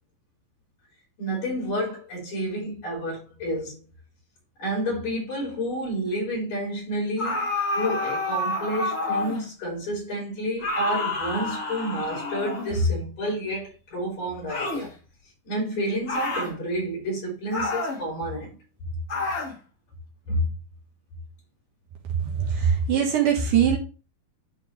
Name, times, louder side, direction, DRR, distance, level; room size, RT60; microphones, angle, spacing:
voice 1, 1.2-3.8 4.6-14.9 15.4-18.6 20.3-20.5, equal, 60° left, 6.6 m, -29 dB
sound 1, 7.2-9.5 10.6-12.9 14.5-14.9 16.1-16.5 17.5-18.0 19.1-19.6, left 2 dB, 40° left, 1.4 m, -29 dB
voice 2, 22.2-23.8, right 8 dB, 65° right, 2.6 m, -22 dB
11.0 x 4.1 x 3.3 m
omnidirectional pair, 4.3 m